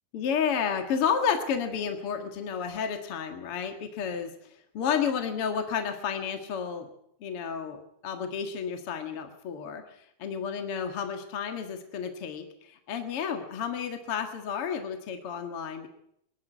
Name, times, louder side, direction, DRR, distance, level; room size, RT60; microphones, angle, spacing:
voice 1, 0.1-6.9 7.2-9.8 10.2-15.9, left 7 dB, 45° left, 6 dB, 2.1 m, -31 dB
22.0 x 13.0 x 9.1 m, 0.74 s
omnidirectional pair, 4.4 m